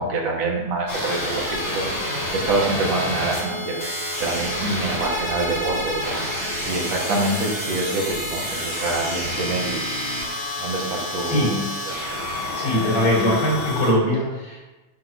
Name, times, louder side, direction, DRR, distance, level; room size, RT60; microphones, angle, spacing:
voice 1, 0.0-3.8 4.2-10.0 10.6-11.6 11.9-12.0, right 2 dB, 60° right, -2 dB, 2.7 m, -26 dB
sound 1, 0.9-13.9, left 1 dB, 25° left, 2.4 m, -28 dB
voice 2, 11.2-11.7 12.5-14.6, equal, 80° left, -5 dB, 4.6 m, -21 dB
10.5 x 4.1 x 6.0 m, 1.1 s
omnidirectional pair, 3.3 m